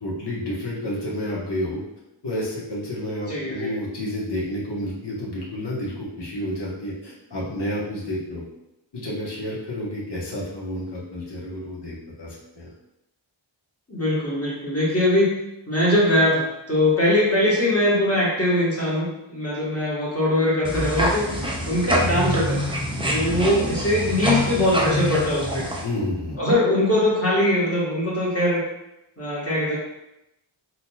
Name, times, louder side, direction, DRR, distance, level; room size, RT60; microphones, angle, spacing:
voice 1, 0.0-1.8 2.2-8.4 8.9-12.7 25.8-26.4, left 1 dB, 55° left, -5 dB, 1.1 m, -30 dB
voice 2, 3.3-3.7 13.9-15.4 15.7-21.3 21.6-22.6 23.0-25.6 26.4-28.6 29.2-29.8, left 1 dB, 30° left, -7 dB, 1.4 m, -21 dB
sound 1, 20.6-25.8, equal, 10° right, 0.5 m, -25 dB
3.8 x 2.8 x 2.3 m, 0.90 s
wide cardioid pair, 65°, 48 cm